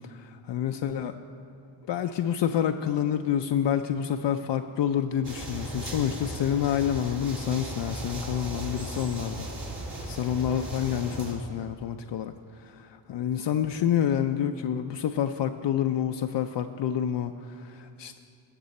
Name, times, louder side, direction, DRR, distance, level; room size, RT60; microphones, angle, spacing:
voice 1, 0.1-1.2 1.9-9.5 10.0-18.2, left 9 dB, 65° left, 6 dB, 0.5 m, -28 dB
sound 1, 5.2-11.3, right 1 dB, 60° right, 2.4 m, -37 dB
17.0 x 6.1 x 4.2 m, 2.4 s
cardioid pair, 55°, 47 cm